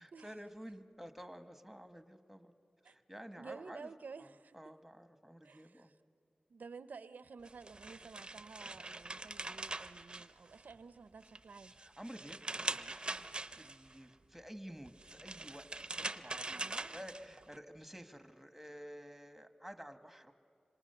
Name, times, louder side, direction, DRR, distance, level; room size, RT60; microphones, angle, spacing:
voice 1, 0.0-2.5 2.8-3.9 4.2-4.3 4.5-5.9 11.7-15.7 16.0-20.3, equal, 5° right, 8 dB, 1.4 m, -51 dB
voice 2, 3.4-4.7 5.4-6.0 6.5-11.7 16.5-17.0, right 5 dB, 85° right, 14 dB, 0.5 m, -52 dB
sound 1, 7.5-10.8 11.2-13.9 14.9-17.6, right 2 dB, 35° right, 0.6 m, -43 dB
26.5 x 25.5 x 6.8 m, 2.3 s
wide cardioid pair, 70°, 3 cm